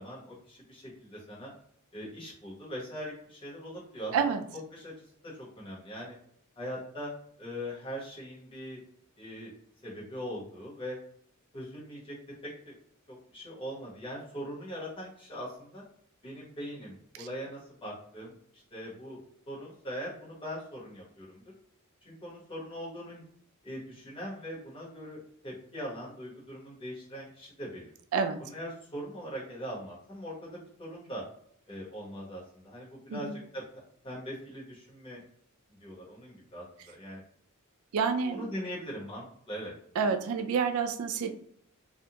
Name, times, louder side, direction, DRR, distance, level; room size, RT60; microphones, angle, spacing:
voice 1, 0.0-1.5 1.9-4.1 4.7-6.1 6.6-7.1 7.4-8.8 9.2-9.5 9.8-11.0 11.5-12.2 12.4-12.7 13.1-15.8 16.2-19.2 19.5-21.4 22.0-23.2 23.6-27.9 28.4-31.2 31.7-33.6 34.0-35.2 35.7-37.2 38.3-39.7, equal, 25° left, -6 dB, 1.0 m, -41 dB
voice 2, 37.9-38.5 40.0-41.3, right 6 dB, 70° right, 6 dB, 0.3 m, -28 dB
2.5 x 2.2 x 2.8 m, 0.66 s
head